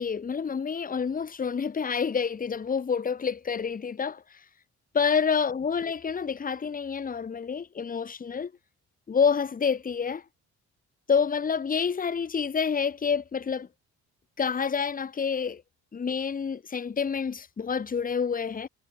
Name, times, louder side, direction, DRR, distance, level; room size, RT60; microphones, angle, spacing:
voice 1, 0.0-4.2 4.9-8.5 9.1-10.2 11.1-13.7 14.4-15.6 15.9-18.7, left 6 dB, 30° left, 1.0 m, -28 dB
cardioid pair, 90°, 30 cm